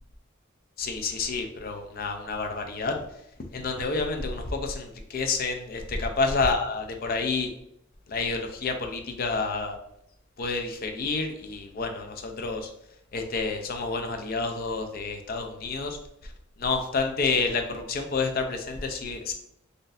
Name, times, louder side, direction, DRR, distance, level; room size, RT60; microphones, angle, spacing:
voice 1, 0.8-2.9 3.5-7.5 8.1-9.8 10.4-12.7 13.1-16.0 16.6-19.3, left 4 dB, 45° left, 5 dB, 0.5 m, -29 dB
4.0 x 2.5 x 2.5 m, 0.75 s
head